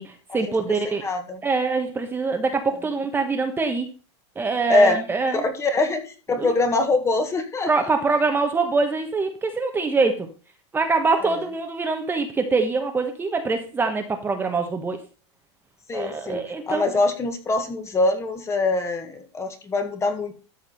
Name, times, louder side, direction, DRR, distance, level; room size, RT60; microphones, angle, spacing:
voice 1, 0.0-1.0 1.4-3.9 4.3-5.4 6.4-6.5 7.7-10.3 10.7-15.0 15.9-17.0, right 4 dB, 15° right, 4 dB, 1.2 m, -24 dB
voice 2, 0.8-1.4 4.7-5.0 5.3-7.7 11.2-11.3 15.9-20.3, left 2 dB, 20° left, 6 dB, 1.8 m, -23 dB
13.0 x 4.8 x 5.7 m, 0.36 s
supercardioid pair, 130°, 15 cm